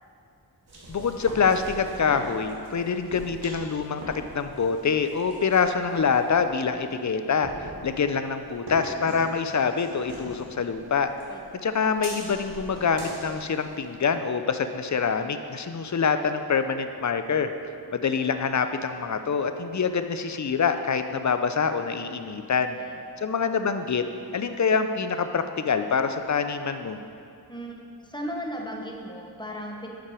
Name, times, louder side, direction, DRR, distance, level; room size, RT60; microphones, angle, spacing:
sound 1, 0.7-14.1, right 1 dB, 70° right, 1.8 m, -43 dB
voice 1, 0.9-11.1 11.6-22.8 23.2-24.0 24.3-27.0, left 5 dB, 45° left, 9 dB, 0.5 m, -25 dB
voice 2, 11.3-11.8 22.4-22.5 22.7-23.0 27.5-29.9, equal, 10° left, 0 dB, 0.9 m, -37 dB
7.6 x 5.8 x 4.8 m, 2.4 s
wide cardioid pair, 60°, 40 cm